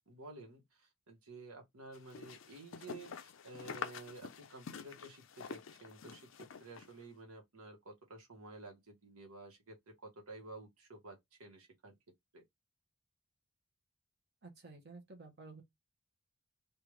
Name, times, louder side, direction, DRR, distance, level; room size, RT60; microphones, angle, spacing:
voice 1, 0.1-11.9 12.3-12.4, right 2 dB, 80° right, 1.2 m, -52 dB
sound 1, 1.9-6.9, left 6 dB, 60° left, 0.4 m, -47 dB
voice 2, 14.4-15.6, right 3 dB, 45° right, 0.9 m, -52 dB
3.4 x 2.4 x 3.1 m
head